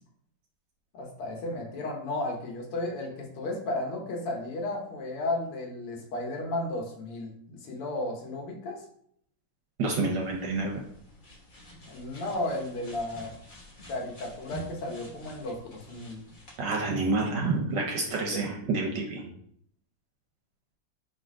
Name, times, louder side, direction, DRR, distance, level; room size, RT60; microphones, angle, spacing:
voice 1, 0.9-8.8 11.9-13.3 13.9-16.2 18.2-18.4, left 2 dB, 80° left, 0 dB, 1.9 m, -34 dB
voice 2, 9.8-10.7 16.6-19.3, right 3 dB, 70° right, 0 dB, 1.1 m, -28 dB
sound 1, 10.1-16.6, equal, 50° left, 0.6 m, -48 dB
4.3 x 2.4 x 4.6 m, 0.67 s
omnidirectional pair, 2.4 m